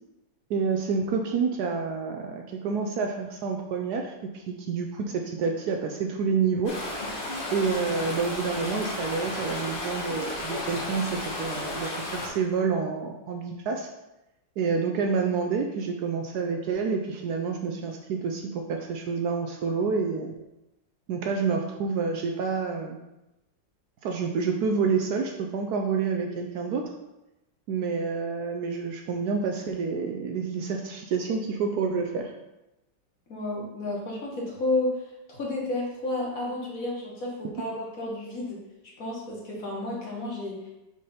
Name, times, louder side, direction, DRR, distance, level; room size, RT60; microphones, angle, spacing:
voice 1, 0.5-6.8 7.5-13.9 14.6-20.3 21.1-23.0 24.0-26.9 27.7-32.3, right 5 dB, 70° right, 3 dB, 1.0 m, -28 dB
sound 1, 6.7-12.3, left 2 dB, 35° left, 1.2 m, -33 dB
voice 2, 33.3-38.6 39.0-40.6, left 2 dB, 50° left, -3 dB, 1.6 m, -31 dB
5.1 x 3.3 x 5.5 m, 0.97 s
omnidirectional pair, 2.0 m